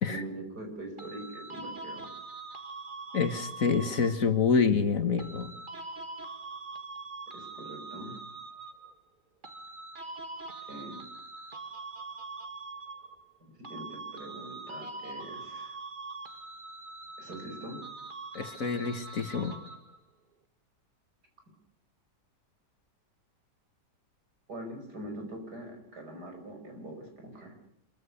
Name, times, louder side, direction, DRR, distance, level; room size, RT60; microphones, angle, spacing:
voice 1, 0.0-2.1 7.3-8.2 10.7-11.1 13.4-15.8 17.2-17.8 24.5-27.6, right 1 dB, 65° right, 3 dB, 6.0 m, -43 dB
sound 1, 1.0-4.3 5.2-9.0 9.4-13.4 13.6-20.0, right 3 dB, 30° right, 1.9 m, -43 dB
voice 2, 3.1-5.5 18.4-19.6, left 5 dB, 50° left, 9 dB, 1.8 m, -27 dB
26.5 x 15.0 x 9.7 m, 0.76 s
omnidirectional pair, 1.9 m